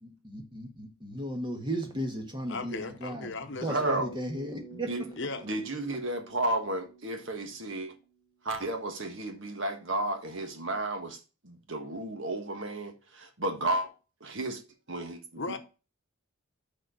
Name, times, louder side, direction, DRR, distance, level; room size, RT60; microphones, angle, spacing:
voice 1, 0.0-3.3 3.6-5.1, right 1 dB, 20° right, 1.6 m, -35 dB
voice 2, 2.5-3.8 5.2-5.4 15.4-15.6, left 3 dB, 55° left, 0.9 m, -36 dB
voice 3, 3.7-4.1 4.7-5.1 5.4-7.9 8.4-11.2 11.4-13.9 14.2-14.6 14.9-15.4, right 2 dB, 55° right, 1.4 m, -32 dB
Bass guitar, 3.8-8.2, right 3 dB, 35° left, 1.3 m, -49 dB
6.3 x 4.5 x 6.3 m
head